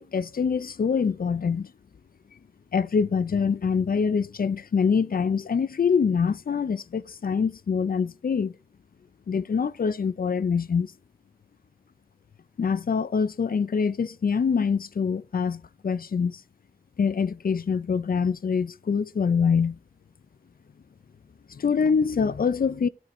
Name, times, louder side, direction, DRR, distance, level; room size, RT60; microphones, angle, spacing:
voice 1, 0.0-1.7 2.7-8.5 9.3-10.9 12.6-16.4 17.0-19.8 21.5-22.9, left 6 dB, 70° left, 0.4 m, -25 dB
12.0 x 4.4 x 3.1 m
wide cardioid pair, 60°, 16 cm